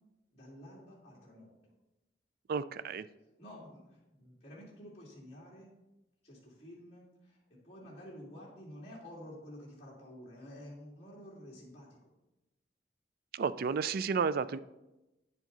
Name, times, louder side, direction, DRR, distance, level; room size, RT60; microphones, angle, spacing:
voice 1, 0.3-1.7 3.4-5.8 6.2-12.0, equal, 35° left, -5 dB, 2.6 m, -51 dB
voice 2, 2.5-3.1 13.3-14.6, right 5 dB, 55° right, 15 dB, 0.3 m, -32 dB
9.8 x 7.4 x 3.9 m, 0.98 s
head